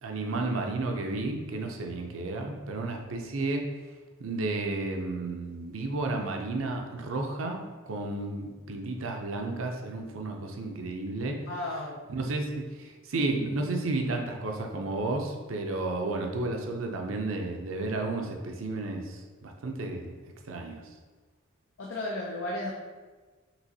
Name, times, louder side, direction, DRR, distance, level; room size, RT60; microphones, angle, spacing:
voice 1, 0.0-3.7 4.2-11.4 12.1-20.2 20.4-20.8, right 2 dB, 80° right, 3 dB, 0.6 m, -32 dB
voice 2, 11.5-12.1 21.8-22.7, left 1 dB, 70° left, -3 dB, 0.6 m, -34 dB
6.0 x 3.0 x 2.7 m, 1.4 s
head